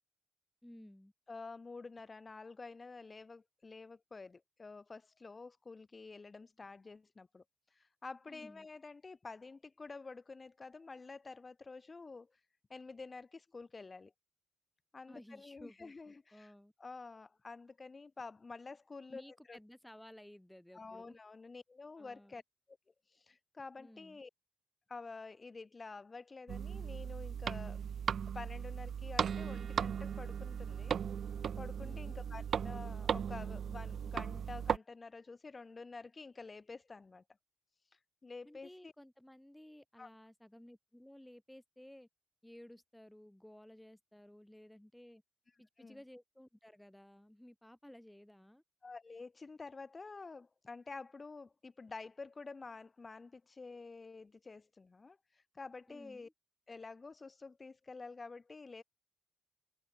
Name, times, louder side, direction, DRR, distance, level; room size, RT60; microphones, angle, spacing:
voice 1, 0.6-1.1 8.3-8.7 15.1-16.7 19.1-21.2 22.0-22.4 23.8-24.2 31.8-32.2 38.4-42.1 42.4-45.2 45.6-48.6 55.9-56.3, left 1 dB, 5° left, 5.7 m, -56 dB
voice 2, 1.3-12.4 12.7-14.1 14.9-16.5 16.8-19.6 20.7-22.4 23.1-24.3 24.9-27.8 28.3-31.0 31.6-37.2 37.8-38.9 40.0-40.1 45.8-46.0 48.8-56.3 56.7-58.8, left 4 dB, 30° left, 1.7 m, -49 dB
sound 1, 26.5-34.8, right 8 dB, 55° right, 0.6 m, -37 dB
cardioid pair, 90°, 0 cm